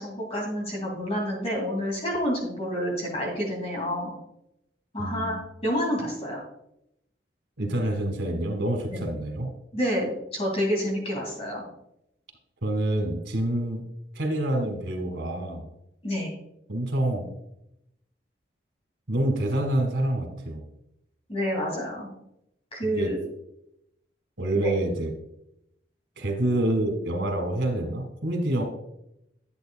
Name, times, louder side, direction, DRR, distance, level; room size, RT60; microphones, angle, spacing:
voice 1, 0.0-4.1 4.9-6.4 8.9-9.0 9.7-11.6 16.0-16.3 21.3-22.1 22.7-23.2 24.5-24.7, equal, 35° left, -2 dB, 2.4 m, -28 dB
voice 2, 5.0-5.3 7.6-9.5 12.6-13.8 14.1-15.7 16.7-17.3 19.1-20.6 22.8-23.1 24.4-25.1 26.2-28.6, right 1 dB, 80° right, 4 dB, 1.8 m, -27 dB
11.0 x 8.2 x 2.3 m, 0.82 s
head